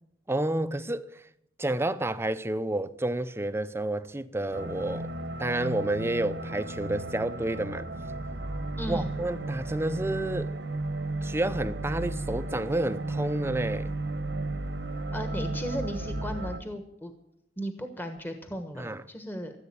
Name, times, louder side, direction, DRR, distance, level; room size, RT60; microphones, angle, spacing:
voice 1, 0.3-1.1 1.6-5.1 5.4-7.9 8.9-10.5 11.2-13.9 18.8-19.0, right 1 dB, 15° right, 0.6 m, -30 dB
sound 1, 4.5-16.6, right 2 dB, 80° right, 1.2 m, -34 dB
voice 2, 8.8-9.1 15.1-17.1 17.6-19.5, equal, 10° left, 1.2 m, -36 dB
15.0 x 8.0 x 8.6 m
head